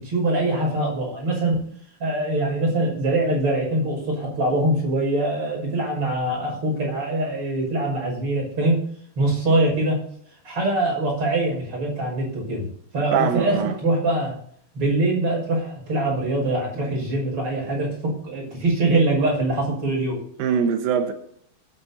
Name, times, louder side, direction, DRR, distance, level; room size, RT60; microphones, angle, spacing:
voice 1, 0.0-1.6 2.0-8.8 9.2-10.0 10.4-12.7 12.9-14.3 14.7-20.2, right 2 dB, 30° right, 6.5 m, -23 dB
voice 2, 13.1-13.7 20.4-21.1, right 7 dB, 80° right, 2.0 m, -22 dB
22.0 x 9.5 x 2.9 m
omnidirectional pair, 5.5 m